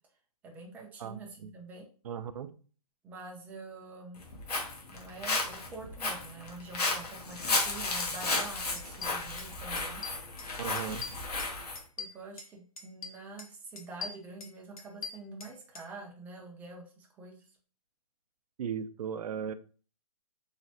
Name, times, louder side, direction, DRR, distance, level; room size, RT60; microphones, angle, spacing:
voice 1, 0.4-1.9 3.0-4.2 4.9-10.0 12.0-17.4, right 3 dB, 10° right, 0 dB, 0.4 m, -46 dB
voice 2, 1.0-1.5 2.0-2.5 10.6-11.0 18.6-19.5, right 7 dB, 70° right, 12 dB, 0.4 m, -37 dB
Walk footsteps, 4.2-11.8, left 3 dB, 85° left, 1.0 m, -33 dB
sound 1, 8.0-8.1 8.4-8.5 8.8-9.5 9.8-10.5 10.8-12.5 12.8-13.5 13.8-15.9, left 5 dB, 65° left, 0.7 m, -42 dB
3.1 x 2.1 x 2.7 m, 0.39 s
hypercardioid pair, 150°, 19 cm